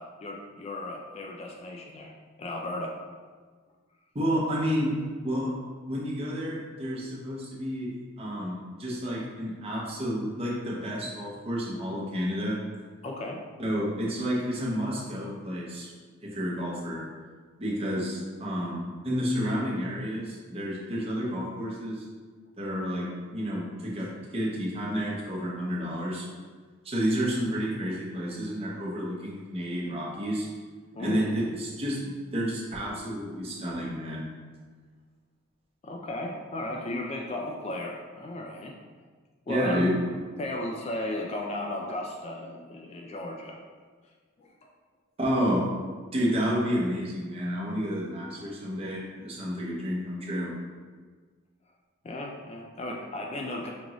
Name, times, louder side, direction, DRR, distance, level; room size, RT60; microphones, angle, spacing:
voice 1, 0.0-2.1 2.4-2.9 13.0-13.4 30.9-31.2 35.8-38.8 39.5-39.8 40.4-43.6 44.4-44.5 52.0-53.7, left 1 dB, 30° left, 0 dB, 0.3 m, -35 dB
voice 2, 4.1-4.9 5.2-5.5 5.9-12.6 13.6-15.9 16.2-17.0 17.6-22.0 22.6-26.3 26.8-30.5 31.0-34.3 39.5-39.9 45.2-45.7 46.1-50.5, equal, 30° right, -5 dB, 0.8 m, -30 dB
5.2 x 2.5 x 3.0 m, 1.5 s
head